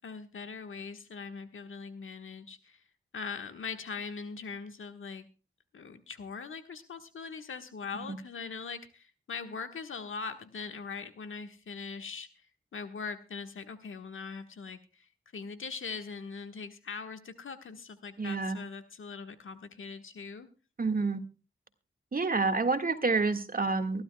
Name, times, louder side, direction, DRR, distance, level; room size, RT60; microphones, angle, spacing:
voice 1, 0.0-2.8 3.1-5.3 5.7-12.3 12.7-20.5, left 5 dB, 75° left, 7 dB, 1.4 m, -41 dB
voice 2, 18.2-18.6 20.8-21.2 22.1-24.0, right 3 dB, 45° right, 6 dB, 1.8 m, -28 dB
23.5 x 12.0 x 2.2 m, 0.33 s
cardioid pair, 45°, 21 cm